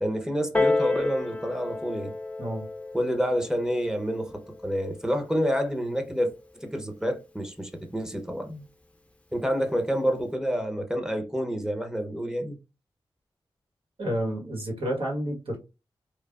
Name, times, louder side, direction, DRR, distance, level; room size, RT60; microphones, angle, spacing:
voice 1, 0.0-2.1 2.9-8.6 9.3-12.6, equal, 5° right, 0.8 m, -28 dB
Piano, 0.5-5.7 6.6-6.7, left 2 dB, 15° left, 0.6 m, -31 dB
voice 2, 14.0-15.6, equal, 70° right, 1.3 m, -30 dB
3.2 x 2.0 x 2.4 m
cardioid pair, 40°, 10 cm